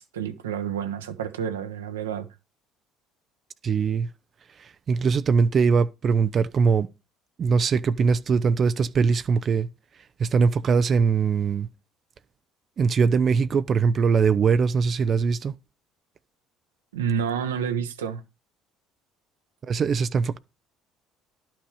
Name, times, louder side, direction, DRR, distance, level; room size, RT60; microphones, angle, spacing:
voice 1, 0.0-2.3 16.9-18.2, right 7 dB, 90° right, 1.0 m, -29 dB
voice 2, 3.6-4.1 4.6-6.9 7.4-9.7 10.2-11.7 12.8-15.5 19.6-20.4, right 5 dB, 45° right, 0.6 m, -21 dB
11.5 x 6.1 x 4.9 m
hypercardioid pair, 60°, 0 cm